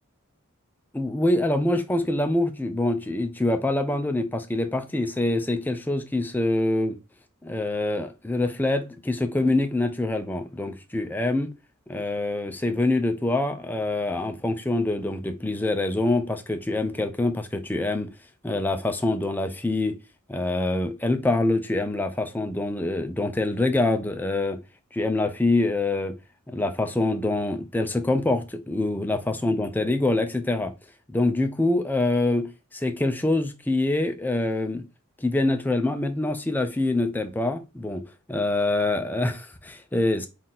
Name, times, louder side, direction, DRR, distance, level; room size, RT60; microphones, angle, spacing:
voice 1, 0.9-7.0 7.4-11.5 11.9-18.1 18.4-20.0 20.3-24.6 24.9-26.1 26.5-30.7 31.1-34.8 35.2-38.0 38.3-40.3, left 2 dB, 10° left, 0.4 m, -25 dB
3.7 x 2.5 x 4.1 m
head